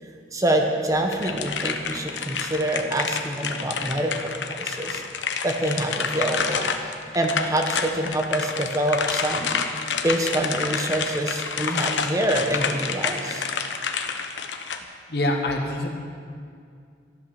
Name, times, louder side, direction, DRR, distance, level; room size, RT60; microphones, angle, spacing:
voice 1, 0.3-5.0 5.4-9.6 10.0-13.5, right 1 dB, 20° right, 3 dB, 1.0 m, -26 dB
sound 1, 1.1-14.8, left 5 dB, 90° left, 1.0 m, -29 dB
voice 2, 15.1-15.9, left 1 dB, 60° left, 2 dB, 1.8 m, -24 dB
13.0 x 11.5 x 7.1 m, 2.3 s
head